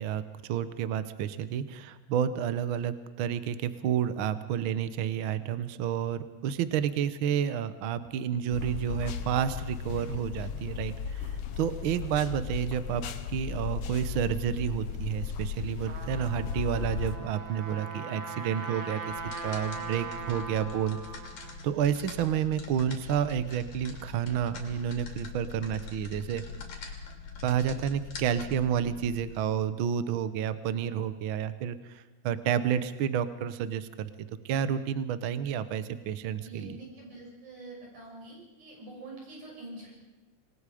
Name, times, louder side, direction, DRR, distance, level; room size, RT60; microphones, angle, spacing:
voice 1, 0.0-13.0 13.3-19.1 19.4-21.0 21.6-26.4 27.4-36.8, right 9 dB, 65° right, 12 dB, 1.3 m, -30 dB
sound 1, 8.5-17.2, left 7 dB, 60° left, 1.8 m, -36 dB
Trumpet, 15.6-21.6, right 3 dB, 40° right, 1.7 m, -40 dB
sound 2, 19.1-29.3, left 5 dB, 85° left, 4.1 m, -43 dB
voice 2, 36.4-39.9, right 2 dB, 85° right, -2 dB, 8.1 m, -45 dB
27.0 x 20.0 x 5.0 m, 1.1 s
omnidirectional pair, 3.4 m